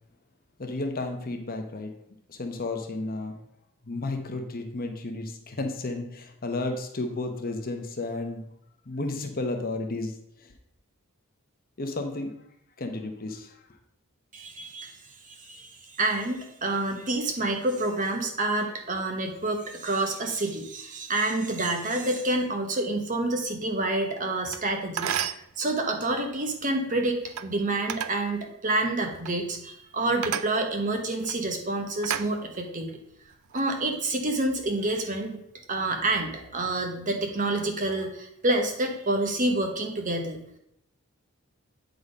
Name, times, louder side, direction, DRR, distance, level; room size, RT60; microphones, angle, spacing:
voice 1, 0.6-1.9 2.3-3.4 3.8-8.5 8.8-10.5 11.8-12.3 12.8-13.6, left 2 dB, 45° left, 5 dB, 0.9 m, -32 dB
voice 2, 14.3-14.9 15.3-32.9 33.5-35.4 35.7-40.4, right 2 dB, 35° right, 4 dB, 1.1 m, -28 dB
sound 1, 24.4-24.6 25.0-25.5 27.2-27.5 27.9-28.2 29.1-29.4 30.2-30.5 31.2-31.4 32.0-32.8 33.3-33.6, right 9 dB, 80° right, 0.4 m, -32 dB
8.3 x 3.9 x 5.1 m, 0.75 s
head